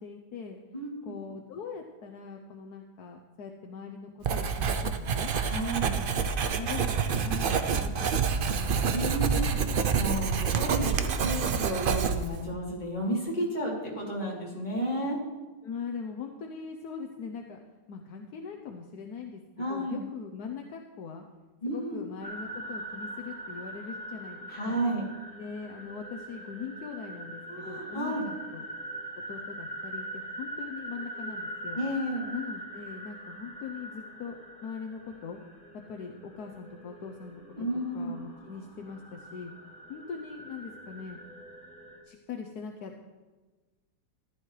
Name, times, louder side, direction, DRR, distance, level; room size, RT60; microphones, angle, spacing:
voice 1, 0.0-0.6 1.0-5.3 5.9-9.4 15.6-17.6 17.9-21.2 21.7-24.8 25.4-28.7 29.3-31.8 32.3-34.3 34.6-35.4 35.7-37.4 37.9-39.5 39.9-41.2 42.0-43.1, left 6 dB, 70° left, 3 dB, 1.3 m, -41 dB
voice 2, 0.7-1.1 5.5-5.9 8.9-15.2 19.6-20.0 21.6-22.0 24.5-25.0 27.5-28.3 31.7-32.3 37.6-38.1, right 1 dB, 25° left, -5 dB, 3.3 m, -32 dB
Writing, 4.2-12.4, right 6 dB, 75° right, 0.4 m, -27 dB
sound 1, 22.2-42.0, right 1 dB, 5° left, 2.3 m, -42 dB
15.0 x 11.5 x 3.3 m, 1.3 s
omnidirectional pair, 1.8 m